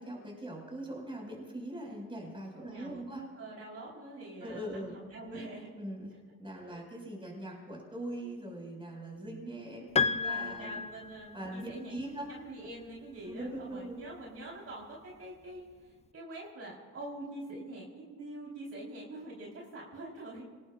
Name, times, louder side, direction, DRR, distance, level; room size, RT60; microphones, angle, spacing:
voice 1, 0.0-3.2 4.4-4.9 5.8-6.1 6.4-10.8 11.3-12.3 13.3-14.0, right 1 dB, 15° right, -1 dB, 6.0 m, -41 dB
voice 2, 2.5-5.7 6.6-6.8 10.1-20.4, right 1 dB, 55° right, -4 dB, 4.5 m, -45 dB
Piano, 10.0-11.6, left 5 dB, 20° left, 0.5 m, -32 dB
27.5 x 19.5 x 2.6 m, 1.5 s
cardioid pair, 90°, 30 cm